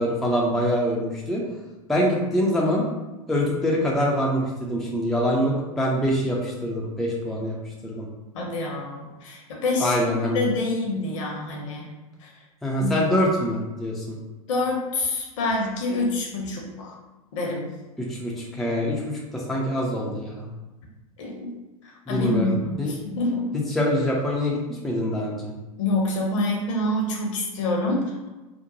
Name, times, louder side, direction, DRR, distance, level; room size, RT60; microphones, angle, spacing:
voice 1, 0.0-1.4 1.9-2.9 3.3-7.6 7.8-8.1 9.8-10.5 12.6-14.2 18.0-20.5 22.1-22.9 23.5-25.5, equal, ahead, -3 dB, 0.4 m, -24 dB
voice 2, 8.3-11.9 12.2-12.3 12.8-12.9 14.5-17.0 17.3-17.7 21.2-21.5 21.8-23.5 25.8-28.3, left 2 dB, 55° left, 0 dB, 0.7 m, -27 dB
2.8 x 2.1 x 2.6 m, 1.1 s
figure-of-eight pair, 85°, 19 cm